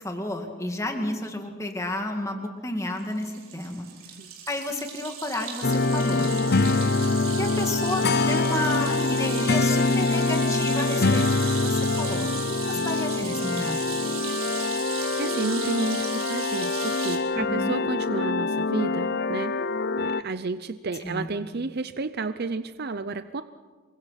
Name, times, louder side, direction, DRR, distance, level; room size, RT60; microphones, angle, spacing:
voice 1, 0.0-3.9 4.5-6.3 7.4-13.8 17.3-17.8 21.0-21.3, left 1 dB, 15° left, 3 dB, 2.2 m, -32 dB
sound 1, 3.0-17.2, right 7 dB, 75° right, 4.3 m, -36 dB
sound 2, 5.6-20.2, left 3 dB, 50° left, 0.7 m, -25 dB
voice 2, 14.4-19.5 20.0-23.4, right 3 dB, 50° right, 11 dB, 0.6 m, -32 dB
28.0 x 23.0 x 5.9 m, 1.5 s
head